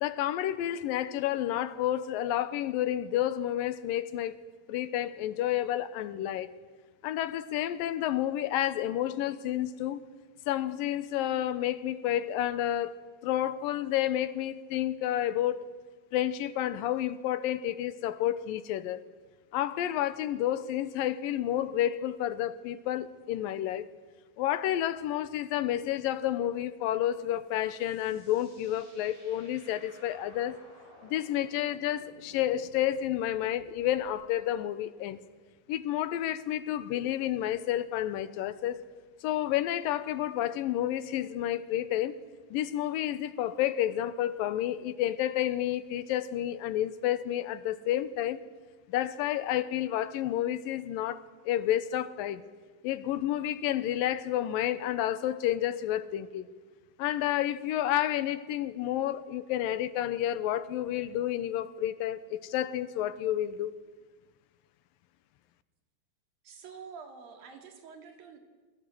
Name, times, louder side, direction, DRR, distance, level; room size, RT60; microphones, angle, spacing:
voice 1, 0.0-4.4 4.7-6.5 7.0-10.0 10.5-15.7 16.1-19.0 19.5-23.9 24.4-30.6 31.0-35.2 35.7-38.9 39.2-42.2 42.5-48.4 48.9-52.4 52.8-56.5 57.0-63.7, left 12 dB, 85° left, 2.7 m, -30 dB
sound 1, 27.1-34.3, equal, 25° right, 6.5 m, -58 dB
voice 2, 66.4-68.4, right 6 dB, 85° right, 4.3 m, -47 dB
29.0 x 21.5 x 7.9 m
omnidirectional pair, 4.0 m